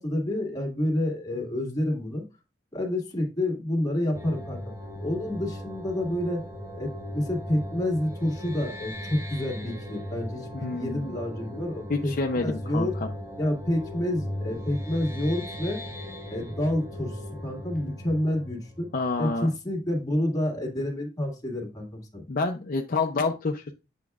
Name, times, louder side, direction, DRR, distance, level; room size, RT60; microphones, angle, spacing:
voice 1, 0.0-2.2 2.7-4.6 5.0-6.4 6.7-12.9 13.4-15.8 16.3-18.9 19.2-22.2, left 1 dB, 20° left, 0 dB, 1.9 m, -29 dB
sound 1, 4.2-19.6, left 1 dB, 15° right, 0.8 m, -38 dB
voice 2, 10.5-11.2 11.9-13.1 18.9-19.5 22.3-23.7, left 3 dB, 50° left, 4 dB, 0.5 m, -28 dB
8.2 x 5.8 x 2.4 m, 0.28 s
head